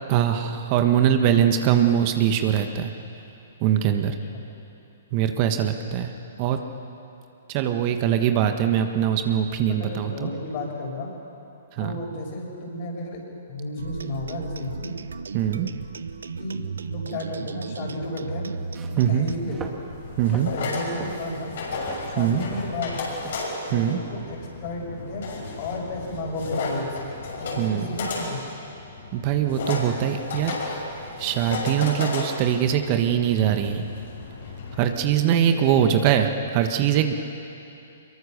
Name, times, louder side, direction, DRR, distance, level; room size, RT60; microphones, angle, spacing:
voice 1, 0.1-2.9 3.6-4.1 5.1-6.1 6.4-6.6 7.5-10.3 11.7-11.9 15.3-15.7 19.0-19.3 20.2-20.5 22.2-22.4 23.7-24.0 27.6-27.9 29.1-30.8 31.2-33.9 34.8-37.1, right 9 dB, 40° right, 6 dB, 1.4 m, -22 dB
voice 2, 9.7-11.1 11.8-13.2 13.5-14.9 16.4-18.5 19.1-19.8 20.3-21.5 22.1-23.0 23.6-27.1 27.4-28.4 35.5-36.0, left 2 dB, 45° left, 0 dB, 6.6 m, -33 dB
sound 1, 13.8-19.4, right 5 dB, 75° right, 0.9 m, -35 dB
sound 2, 18.6-23.7, right 4 dB, 20° right, 2.3 m, -42 dB
sound 3, 19.9-34.9, left 3 dB, 60° left, 6.6 m, -33 dB
24.5 x 22.5 x 6.8 m, 2.8 s
figure-of-eight pair, 120°, 0 cm